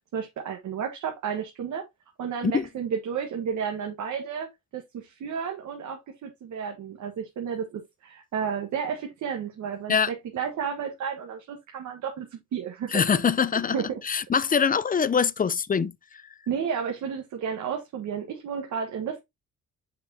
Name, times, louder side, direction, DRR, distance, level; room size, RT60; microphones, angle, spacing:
voice 1, 0.1-1.8 2.2-13.0 13.7-14.0 16.5-19.2, right 7 dB, 70° right, 1.5 m, -32 dB
voice 2, 12.9-13.8 14.0-15.9, left 6 dB, 30° left, 0.6 m, -23 dB
6.7 x 5.7 x 2.8 m
cardioid pair, 90°, 30 cm